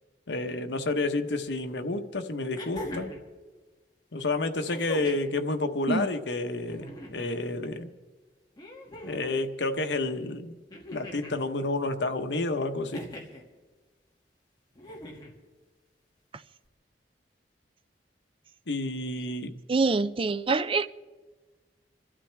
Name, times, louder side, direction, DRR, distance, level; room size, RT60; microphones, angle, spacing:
voice 1, 0.3-3.1 4.1-7.9 9.0-10.6 10.9-13.0 18.7-19.5, left 2 dB, 85° left, 1.1 m, -30 dB
sound 1, 1.5-1.6 2.5-3.3 4.7-5.3 6.6-7.3 8.6-9.4 10.7-11.4 12.9-13.4 14.8-15.3 16.7-16.8, left 1 dB, 25° left, 2.2 m, -41 dB
voice 2, 19.7-20.9, right 3 dB, 30° right, 0.4 m, -25 dB
27.0 x 12.5 x 3.4 m
head